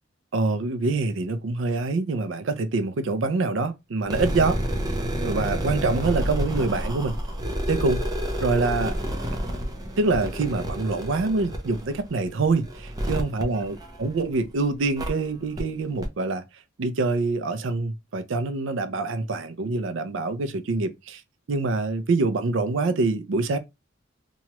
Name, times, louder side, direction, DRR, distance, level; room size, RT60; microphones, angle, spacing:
voice 1, 0.3-4.6 5.2-7.2 7.7-8.0 8.4-9.0 10.0-16.4 16.8-21.2 21.5-23.6, right 3 dB, 75° right, 0.5 m, -25 dB
sound 1, 4.0-14.4 15.0-15.1 15.6-15.7 16.0-16.1, equal, 20° right, 0.5 m, -29 dB
3.0 x 2.3 x 2.9 m
head